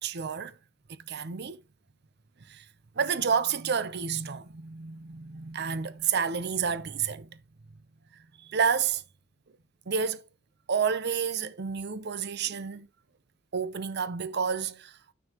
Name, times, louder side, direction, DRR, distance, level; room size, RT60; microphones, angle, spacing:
voice 1, 0.0-0.5 1.1-1.6 2.5-2.7 3.0-7.3 8.4-9.0 9.9-10.3 10.7-12.9 13.5-15.1, right 6 dB, 55° right, 0.7 m, -30 dB
9.4 x 6.2 x 2.9 m
head